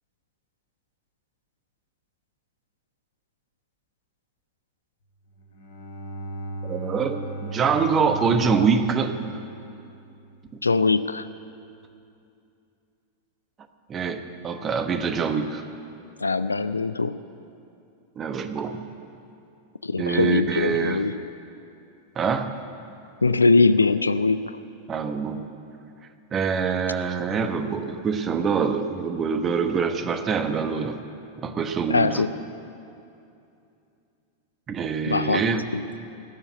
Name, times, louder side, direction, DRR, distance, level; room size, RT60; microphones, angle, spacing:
Bowed string instrument, 5.3-10.5, right 1 dB, 60° left, 2.1 m, -36 dB
voice 1, 6.6-9.2 13.9-15.6 18.2-18.9 20.0-21.0 22.1-22.5 24.9-25.4 26.3-31.0 31.4-32.2 34.7-35.6, right 5 dB, 25° right, 8 dB, 1.1 m, -25 dB
voice 2, 10.6-11.3 16.2-17.2 19.8-21.1 23.2-24.6 31.9-32.3 35.1-35.4 35.7-35.8, left 3 dB, 80° left, 14 dB, 0.4 m, -21 dB
19.0 x 7.0 x 9.6 m, 2.6 s
figure-of-eight pair, 90°, 0 cm